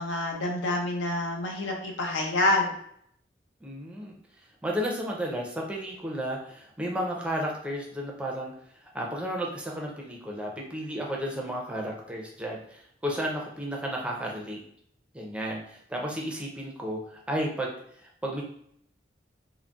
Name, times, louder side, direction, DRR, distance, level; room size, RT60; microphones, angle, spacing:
voice 1, 0.0-2.7, left 1 dB, 80° left, 1 dB, 0.7 m, -27 dB
voice 2, 3.6-4.1 4.6-8.5 8.8-14.6 15.1-18.4, equal, 5° right, -1 dB, 0.5 m, -33 dB
3.7 x 2.0 x 2.3 m, 0.68 s
head